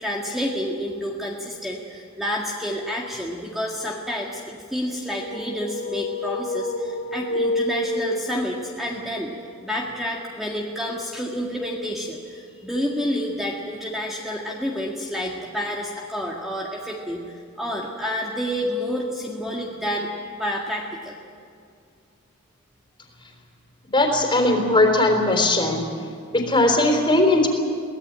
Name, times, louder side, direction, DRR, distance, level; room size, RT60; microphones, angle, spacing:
voice 1, 0.0-9.3 9.6-21.2, equal, ahead, -3 dB, 1.8 m, -29 dB
sound 1, 5.2-8.8, left 1 dB, 55° left, 2.9 m, -28 dB
voice 2, 23.9-25.9 26.3-27.5, left 2 dB, 25° left, 3 dB, 3.8 m, -19 dB
23.5 x 18.0 x 8.7 m, 2.3 s
head